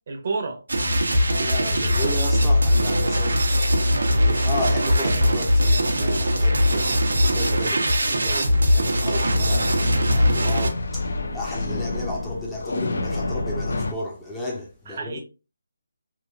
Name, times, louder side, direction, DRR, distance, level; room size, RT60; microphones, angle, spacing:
voice 1, 0.1-0.6 14.9-15.2, right 4 dB, 40° right, 0.7 m, -29 dB
sound 1, 0.7-10.7, equal, 85° right, 0.7 m, -20 dB
voice 2, 1.0-15.2, left 1 dB, 5° left, 0.6 m, -34 dB
sound 2, 6.7-6.8 8.0-8.4 9.2-13.9, left 2 dB, 75° left, 0.5 m, -29 dB
3.0 x 2.4 x 2.3 m
hypercardioid pair, 170°, 0 cm